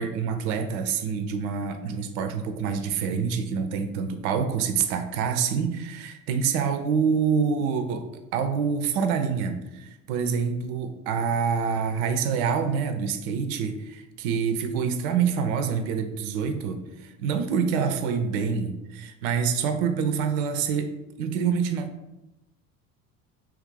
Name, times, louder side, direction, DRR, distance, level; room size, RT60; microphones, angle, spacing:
voice 1, 0.0-8.1 8.3-21.9, right 6 dB, 65° right, 8 dB, 0.5 m, -26 dB
3.1 x 2.4 x 3.2 m, 0.95 s
hypercardioid pair, 65°, 46 cm